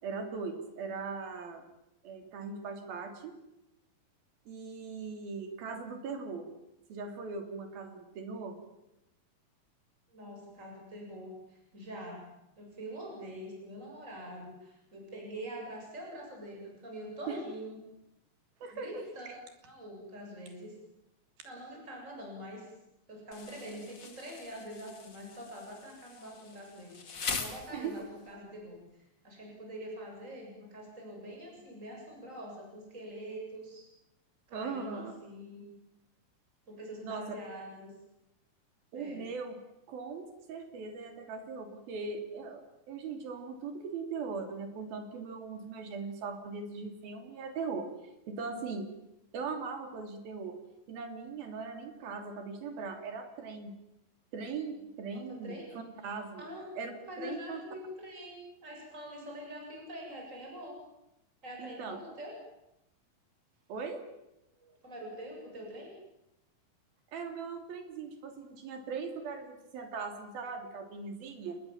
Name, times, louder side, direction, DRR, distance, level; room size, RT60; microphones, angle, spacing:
voice 1, 0.0-1.6 2.0-3.3 4.5-6.5 6.9-8.6 17.3-17.4 18.6-19.4 27.7-27.9 34.5-35.1 37.0-37.4 38.9-39.6 39.9-47.9 48.3-48.9 49.3-50.6 50.9-53.7 54.3-56.5 56.8-56.9 57.2-57.6 61.6-62.0 63.7-64.0 64.6-64.8 67.1-71.6, right 4 dB, 85° right, 6 dB, 5.0 m, -40 dB
voice 2, 10.1-12.2 12.6-17.8 18.7-19.3 19.6-20.7 21.4-22.7 23.1-28.8 29.2-33.8 34.5-35.6 36.7-37.9 38.9-39.2 55.4-56.1 56.4-60.8 61.4-62.3 64.8-65.9, equal, 20° right, 0 dB, 8.0 m, -44 dB
Insect, 23.3-28.3, left 5 dB, 35° left, 2.5 m, -42 dB
29.5 x 21.0 x 7.4 m, 0.87 s
omnidirectional pair, 4.1 m